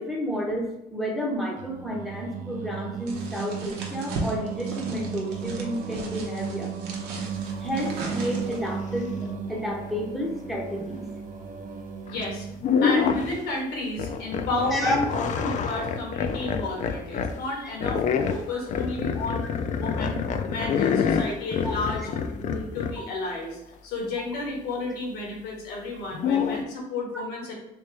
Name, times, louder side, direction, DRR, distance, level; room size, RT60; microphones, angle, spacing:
voice 1, 0.0-6.7 7.6-11.0 14.7-15.0 21.6-21.8 27.1-27.2, equal, ahead, -1 dB, 0.7 m, -31 dB
Singing, 1.6-12.7, right 6 dB, 55° right, 0.4 m, -35 dB
sound 1, 3.1-8.8, right 3 dB, 85° right, 0.8 m, -37 dB
voice 2, 12.1-12.5 12.8-19.5 19.8-27.5, left 2 dB, 85° left, -1 dB, 1.3 m, -32 dB
sound 2, 12.1-12.2 12.6-13.5 14.0-17.4 17.8-23.0 26.1-26.6, left 6 dB, 45° left, 0.4 m, -26 dB
3.2 x 2.9 x 3.3 m, 0.89 s
cardioid pair, 110°, 17 cm